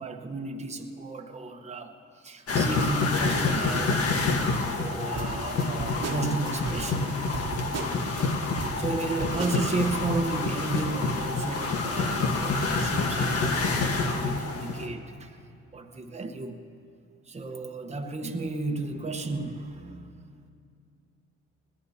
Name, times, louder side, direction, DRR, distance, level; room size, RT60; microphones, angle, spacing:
voice 1, 0.0-4.1 4.7-7.5 8.8-15.4 15.7-16.6 17.3-20.1, right 3 dB, 20° right, 3 dB, 1.1 m, -33 dB
sound 1, 2.5-14.9, left 3 dB, 50° left, 1.4 m, -27 dB
sound 2, 5.1-8.2 8.6-10.3, right 4 dB, 55° right, 1.2 m, -36 dB
20.5 x 17.5 x 2.8 m, 2.4 s
cardioid pair, 90°, 30 cm